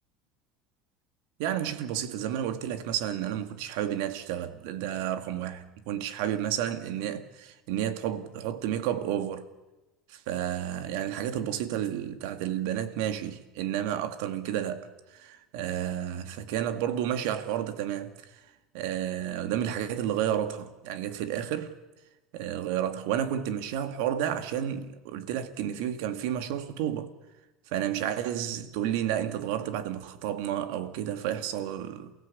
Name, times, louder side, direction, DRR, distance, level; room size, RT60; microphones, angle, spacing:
voice 1, 1.4-5.6 5.9-9.5 10.1-18.1 18.7-21.7 22.3-27.1 27.7-32.1, right 10 dB, 70° right, 2.1 m, -31 dB
28.5 x 16.0 x 8.5 m
cardioid pair, 160°, 0 cm